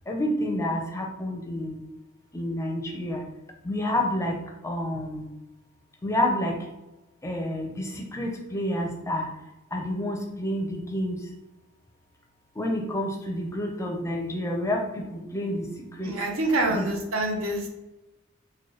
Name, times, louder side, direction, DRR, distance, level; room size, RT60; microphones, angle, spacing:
voice 1, 0.1-1.8 2.3-3.2 3.6-5.3 6.0-6.6 7.2-9.3 9.7-11.2 12.6-16.2 16.7-16.9, left 1 dB, 15° left, 1 dB, 0.4 m, -29 dB
voice 2, 16.0-17.7, right 2 dB, 85° right, 2 dB, 0.7 m, -26 dB
3.8 x 2.1 x 3.1 m, 0.98 s
head